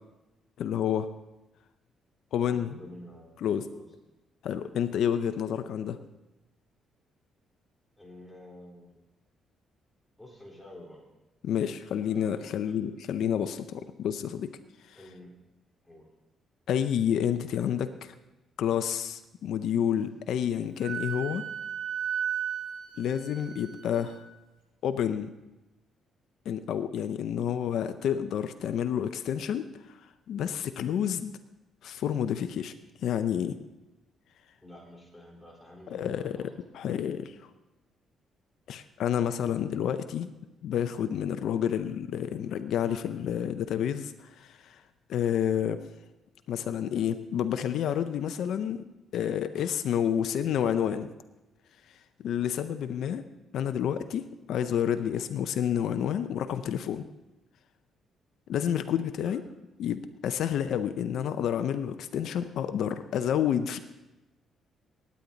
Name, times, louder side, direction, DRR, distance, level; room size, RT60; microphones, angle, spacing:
voice 1, 0.6-1.1 2.3-2.8 3.4-3.7 4.4-6.0 11.4-14.5 14.9-15.0 16.7-18.1 18.6-21.4 23.0-24.2 24.8-25.3 26.5-30.0 30.3-31.4 31.8-32.7 33.0-33.6 35.9-36.5 36.7-37.4 38.7-40.3 40.6-44.8 45.1-45.8 46.5-48.8 49.1-51.1 52.2-53.2 53.5-57.0 58.5-59.4 59.8-63.8, left 9 dB, 75° left, 9 dB, 0.6 m, -29 dB
voice 2, 2.4-3.9 8.0-9.0 10.2-11.0 11.8-12.8 14.9-15.3 15.8-16.1 34.6-36.5 59.2-59.4, left 1 dB, 5° left, -1 dB, 3.8 m, -49 dB
Wind instrument woodwind instrument, 20.8-24.3, right 8 dB, 80° right, 3.6 m, -35 dB
18.5 x 8.5 x 4.0 m, 1.0 s
cardioid pair, 90°, 0 cm